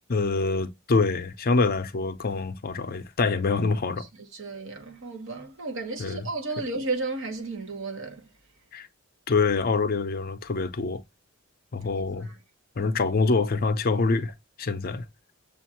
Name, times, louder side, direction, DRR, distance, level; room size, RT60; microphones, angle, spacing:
voice 1, 0.1-4.1 6.0-6.3 8.7-8.9 9.3-11.0 11.7-12.3 12.8-15.0, left 4 dB, 45° left, 0.6 m, -25 dB
voice 2, 4.3-8.2 12.2-12.3, right 3 dB, 65° right, 1.2 m, -33 dB
6.9 x 2.5 x 2.8 m
head